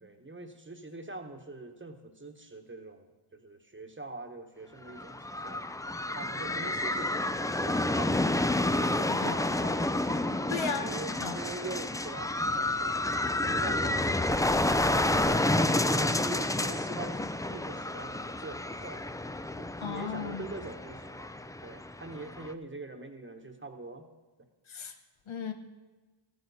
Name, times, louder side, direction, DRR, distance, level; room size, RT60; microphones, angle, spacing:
voice 1, 0.0-5.7 6.1-10.3 10.7-13.1 13.4-19.0 19.5-21.3 21.6-24.1, right 2 dB, 25° right, 5 dB, 1.2 m, -44 dB
sound 1, 4.9-22.5, left 2 dB, 10° left, 0.4 m, -30 dB
voice 2, 10.5-10.8 11.2-11.3 19.8-20.4 24.7-24.9 25.3-25.5, left 6 dB, 75° left, 6 dB, 1.2 m, -35 dB
14.0 x 10.5 x 4.2 m, 1.3 s
cardioid pair, 70°, 48 cm